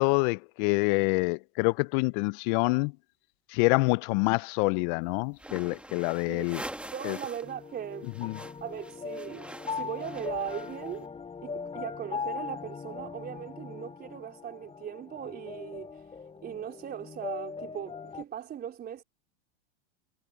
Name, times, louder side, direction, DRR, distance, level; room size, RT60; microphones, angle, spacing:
voice 1, 0.0-2.9 3.5-6.6 7.0-7.2 8.2-8.4, left 30 dB, 50° left, 0.6 m, -26 dB
sound 1, 5.3-7.5 7.8-11.0, right 1 dB, 5° right, 2.1 m, -44 dB
voice 2, 6.9-8.1 8.6-11.1 11.4-19.0, right 9 dB, 30° right, 4.1 m, -39 dB
sound 2, 7.4-18.2, left 5 dB, 20° left, 4.4 m, -40 dB
hypercardioid pair, 105°, 33 cm